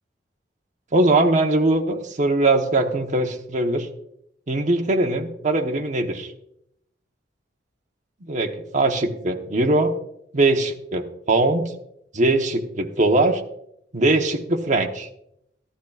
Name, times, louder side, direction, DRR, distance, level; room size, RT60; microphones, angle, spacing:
voice 1, 0.9-3.9 4.5-6.3 8.2-9.9 10.3-11.7 12.1-13.4 13.9-15.1, right 2 dB, 40° right, 3 dB, 1.1 m, -21 dB
15.0 x 11.5 x 2.4 m, 0.78 s
head